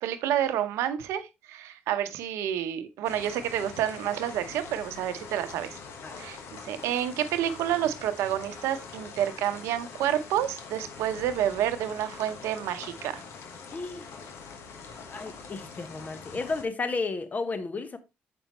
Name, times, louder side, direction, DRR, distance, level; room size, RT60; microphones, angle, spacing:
voice 1, 0.0-5.8 6.2-6.4 6.6-13.2, right 11 dB, 85° right, 0.8 m, -29 dB
sound 1, 3.0-16.6, left 5 dB, 75° left, 1.2 m, -44 dB
voice 2, 13.7-14.1 15.1-18.0, left 3 dB, 35° left, 1.0 m, -33 dB
6.9 x 5.3 x 2.9 m
supercardioid pair, 70°, 5 cm